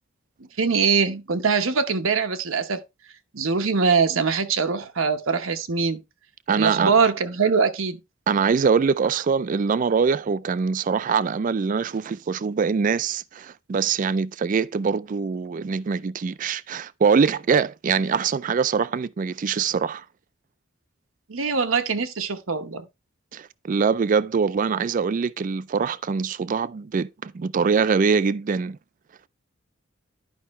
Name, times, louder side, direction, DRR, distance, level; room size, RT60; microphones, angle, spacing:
voice 1, 0.6-2.8 3.3-6.0 6.6-8.0 21.3-22.9, right 5 dB, 85° right, 1.0 m, -22 dB
voice 2, 6.5-6.9 8.3-20.1 23.3-28.8, right 5 dB, 40° right, 0.4 m, -23 dB
11.0 x 5.5 x 3.1 m
head